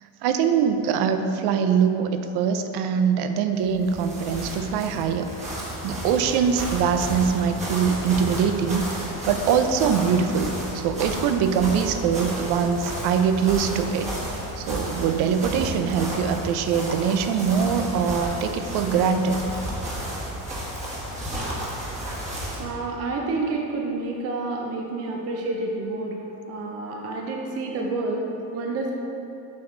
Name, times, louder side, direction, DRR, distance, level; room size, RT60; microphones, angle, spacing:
voice 1, 0.2-5.3 5.8-14.1 14.6-19.4, right 7 dB, 80° right, 8 dB, 0.6 m, -23 dB
sound 1, 3.6-22.7, equal, 20° right, 1.3 m, -32 dB
voice 2, 22.6-26.2 26.5-28.3 28.5-28.9, right 3 dB, 40° right, 0 dB, 0.7 m, -29 dB
7.5 x 6.1 x 3.8 m, 2.9 s
cardioid pair, 170°, 38 cm